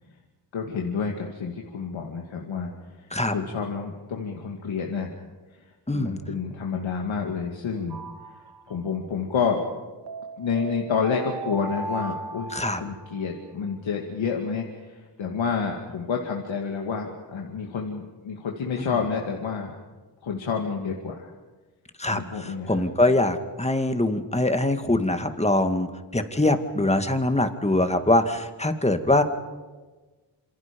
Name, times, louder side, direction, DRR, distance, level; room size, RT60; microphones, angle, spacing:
voice 1, 0.5-5.1 5.6-8.0 8.3-9.6 10.4-19.8 20.2-21.3 22.1-22.9, left 5 dB, 85° left, 1 dB, 2.5 m, -29 dB
voice 2, 5.9-6.2 12.5-12.8 22.0-29.2, left 2 dB, 15° left, 7 dB, 2.1 m, -23 dB
sound 1, 7.9-8.9 10.1-13.3, right 3 dB, 55° right, 1.6 m, -37 dB
27.5 x 27.0 x 5.4 m, 1.3 s
cardioid pair, 80°, 46 cm